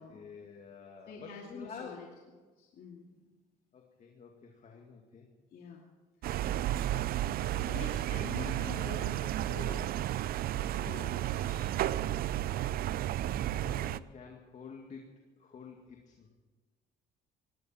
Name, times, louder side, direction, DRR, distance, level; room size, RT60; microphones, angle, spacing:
voice 1, 0.0-2.0 3.7-5.3 13.5-16.3, left 6 dB, 45° left, 2 dB, 2.2 m, -50 dB
voice 2, 1.1-2.1 2.6-3.3 5.5-5.8 7.6-10.1 10.8-11.6, left 5 dB, 60° left, -1 dB, 2.6 m, -46 dB
sound 1, 6.2-14.0, right 13 dB, 65° right, 0.5 m, -32 dB
19.5 x 17.0 x 4.4 m, 1.4 s
cardioid pair, 110°, 17 cm